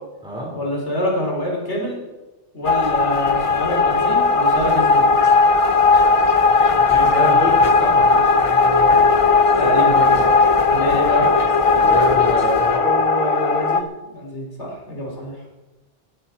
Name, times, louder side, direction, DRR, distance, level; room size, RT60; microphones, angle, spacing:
voice 1, 0.5-2.0 2.5-5.1 9.6-11.3 14.1-15.4, equal, 70° left, -2 dB, 4.2 m, -25 dB
sound 1, 2.7-13.8, left 4 dB, 35° left, 0.6 m, -16 dB
voice 2, 6.5-9.2 11.7-13.9, right 1 dB, 5° right, -4 dB, 4.6 m, -28 dB
18.5 x 11.5 x 4.5 m, 1.1 s
omnidirectional pair, 1.2 m